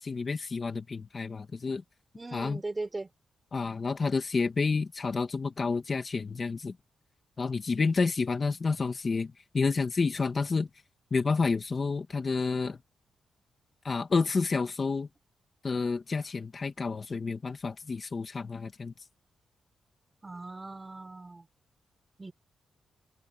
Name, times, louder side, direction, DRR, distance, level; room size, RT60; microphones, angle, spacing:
voice 1, 0.0-1.8 2.3-2.6 3.5-6.8 7.4-10.7 11.1-12.8 13.8-15.1 15.6-18.9, left 4 dB, 35° left, 1.8 m, -29 dB
voice 2, 2.2-3.1 20.2-21.5 22.2-22.3, right 2 dB, 20° right, 3.9 m, -38 dB
open air
cardioid pair, 120°, 0 cm